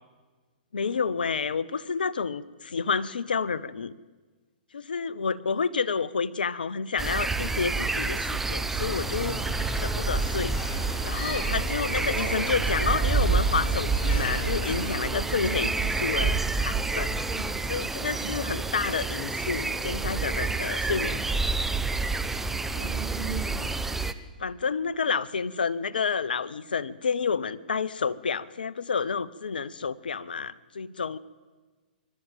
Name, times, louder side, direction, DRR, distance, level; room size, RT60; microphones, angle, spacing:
voice 1, 0.7-4.0 4.7-9.4 9.8-10.6 11.0-17.2 17.7-21.7 22.7-22.9 24.4-31.2, left 5 dB, 75° left, 18 dB, 0.8 m, -30 dB
sound 1, 7.0-24.1, right 4 dB, 5° right, 0.9 m, -28 dB
sound 2, 8.9-15.0, left 2 dB, 35° left, 6.7 m, -37 dB
voice 2, 12.0-12.6 15.4-15.7 16.1-16.3 17.3-17.5 18.1-18.3 22.8-23.5, right 6 dB, 35° right, 2 dB, 5.8 m, -38 dB
24.5 x 12.5 x 9.1 m, 1.3 s
hypercardioid pair, 120°, 5 cm